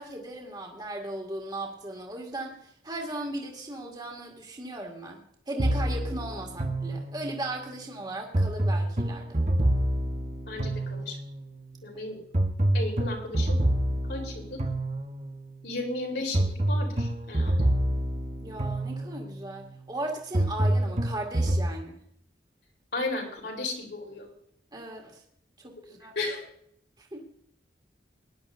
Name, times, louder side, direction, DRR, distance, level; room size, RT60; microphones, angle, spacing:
voice 1, 0.0-2.6 2.8-5.2 5.5-9.3 11.9-12.0 18.4-22.0 24.7-25.2 25.6-26.1 27.0-27.2, right 1 dB, 25° right, 0 dB, 2.2 m, -37 dB
sound 1, 5.6-7.5 8.3-11.4 12.3-15.4 16.3-19.4 20.3-21.7, right 1 dB, 40° right, 1.1 m, -27 dB
voice 2, 10.5-11.2 11.8-12.2 12.7-13.6 14.1-14.6 15.6-17.7 22.9-24.3 26.2-26.5, left 2 dB, 70° left, 1 dB, 3.8 m, -34 dB
20.0 x 11.0 x 2.6 m, 0.67 s
head